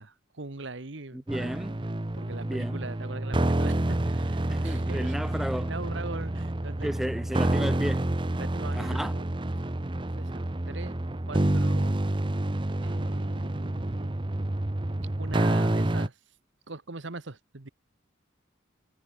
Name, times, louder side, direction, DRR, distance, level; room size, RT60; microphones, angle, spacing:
voice 1, 0.0-1.6 2.1-5.1 5.5-7.1 8.3-9.3 10.2-10.9 11.3-12.0 12.8-14.1 15.2-16.2 16.7-17.7, right 3 dB, 65° right, 1.4 m, -41 dB
voice 2, 1.1-1.8 2.4-2.9 4.5-5.7 6.8-8.1 8.7-9.1, equal, ahead, 0.3 m, -33 dB
sound 1, 1.3-16.1, right 1 dB, 25° right, 0.8 m, -28 dB
head